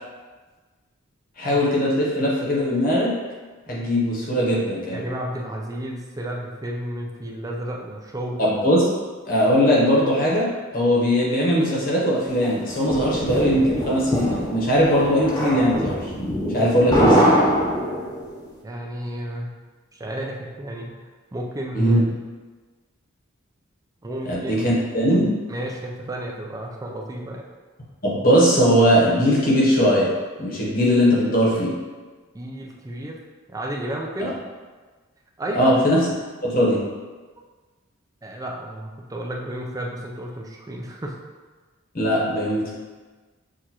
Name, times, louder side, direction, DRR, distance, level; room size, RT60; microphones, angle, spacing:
voice 1, 1.4-3.1 3.7-5.0 8.4-8.9 9.3-16.1 16.5-17.3 21.7-22.0 24.3-25.3 28.0-30.1 30.4-31.7 34.2-34.3 35.5-36.0 36.4-36.8 41.9-42.7, equal, 45° left, -5 dB, 1.1 m, -20 dB
voice 2, 4.9-8.5 18.6-19.5 19.9-22.0 24.0-24.6 25.5-27.5 32.3-33.2 33.5-34.4 35.4-35.7 38.2-41.2, right 1 dB, 15° right, 0 dB, 0.4 m, -32 dB
sound 1, 12.4-18.3, equal, 20° left, 0.7 m, -23 dB
6.4 x 2.5 x 2.9 m, 1.4 s
head